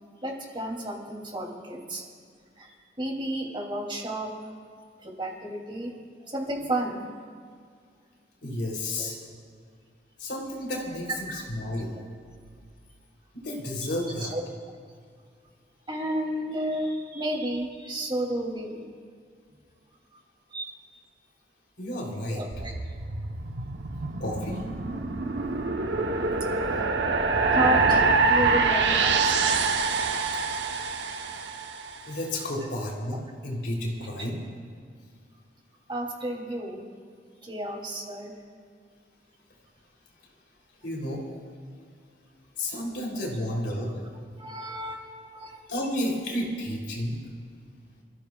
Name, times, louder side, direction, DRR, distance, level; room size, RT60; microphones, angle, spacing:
voice 1, 0.2-2.0 2.5-4.3 5.0-5.9 6.3-7.0 8.9-9.1 11.1-11.2 14.2-14.4 15.9-18.8 20.5-20.7 22.3-22.8 27.5-29.5 35.9-36.8 37.4-38.3 44.4-45.6, right 1 dB, 30° right, 0 dB, 2.8 m, -32 dB
voice 2, 8.4-9.1 10.2-11.1 11.5-12.0 13.3-14.3 21.8-22.4 24.2-24.6 32.1-34.4 40.8-41.2 42.6-44.1 45.7-47.2, left 1 dB, 70° left, -2 dB, 3.3 m, -31 dB
sound 1, 22.5-31.9, right 4 dB, 80° right, 0.9 m, -25 dB
28.5 x 15.0 x 2.4 m, 2.1 s
head